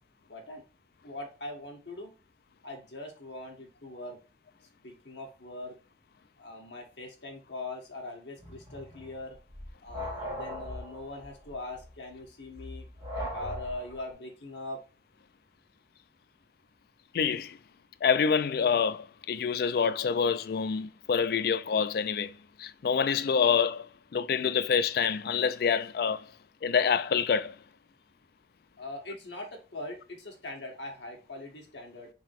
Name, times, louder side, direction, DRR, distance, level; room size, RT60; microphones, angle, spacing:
voice 1, 0.3-0.6 1.0-2.1 2.6-4.2 4.8-5.8 6.4-9.4 9.8-12.9 13.3-14.8 28.8-32.1, left 2 dB, 85° left, 1.4 m, -41 dB
sound 1, 8.4-14.1, equal, 20° right, 1.6 m, -40 dB
voice 2, 17.1-17.6 18.0-26.3 26.6-27.6, left 6 dB, 55° left, 0.3 m, -27 dB
3.8 x 2.9 x 4.5 m
head